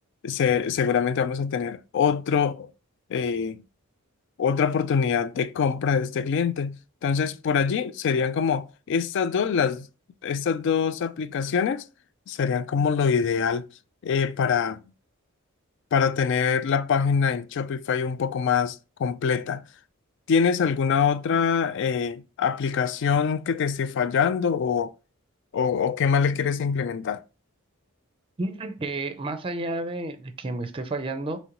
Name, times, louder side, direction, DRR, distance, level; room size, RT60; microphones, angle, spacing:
voice 1, 0.2-2.7 3.1-3.6 4.4-9.9 10.2-11.8 12.3-13.7 14.0-14.8 15.9-19.6 20.3-24.9 25.5-27.2, left 6 dB, 55° left, 0.3 m, -24 dB
voice 2, 28.4-31.4, right 2 dB, 25° right, 0.5 m, -31 dB
5.0 x 3.0 x 2.9 m
head